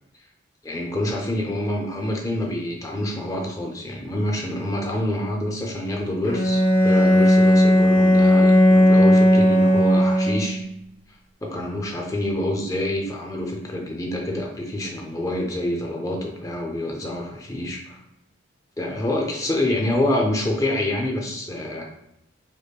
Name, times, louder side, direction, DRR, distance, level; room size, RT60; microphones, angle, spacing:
voice 1, 0.6-10.6 11.4-18.0 18.8-21.9, left 1 dB, 15° left, 0 dB, 0.4 m, -27 dB
Bowed string instrument, 6.2-10.7, left 1 dB, 80° left, 0.8 m, -16 dB
5.1 x 2.0 x 2.2 m, 0.85 s
head